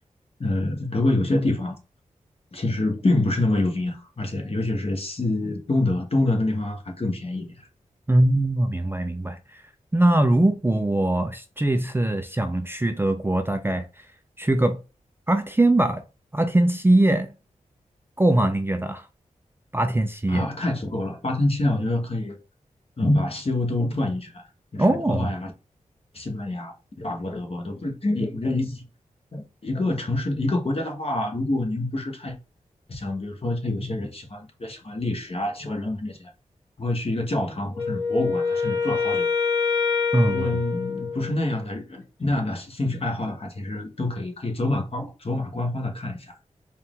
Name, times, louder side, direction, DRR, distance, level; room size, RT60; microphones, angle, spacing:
voice 1, 0.4-1.8 2.5-7.6 20.3-22.4 23.0-24.4 24.7-25.5 26.1-28.8 29.3-32.3 32.9-36.3 36.8-39.3 40.3-46.3, left 2 dB, 45° left, 1.2 m, -26 dB
voice 2, 8.1-9.6 9.9-13.8 14.4-14.8 15.3-16.0 16.3-17.3 18.2-19.0 19.7-20.5 24.8-25.3 40.1-40.5, right 1 dB, 15° right, 0.5 m, -21 dB
Wind instrument woodwind instrument, 37.7-41.6, left 5 dB, 20° left, 1.9 m, -25 dB
4.3 x 2.4 x 3.7 m
cardioid pair, 55°, 14 cm